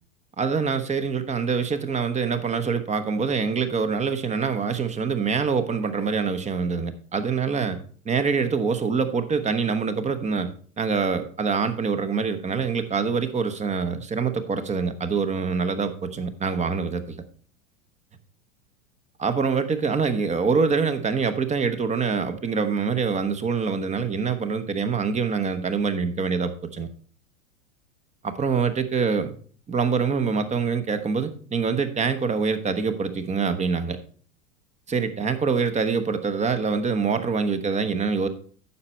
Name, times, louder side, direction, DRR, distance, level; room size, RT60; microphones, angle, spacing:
voice 1, 0.4-7.8 8.0-10.5 10.8-17.1 19.2-26.9 28.2-29.3 29.7-34.0 34.9-38.3, right 5 dB, 15° right, 9 dB, 1.0 m, -25 dB
9.7 x 6.8 x 4.3 m, 0.43 s
hypercardioid pair, 105°, 40 cm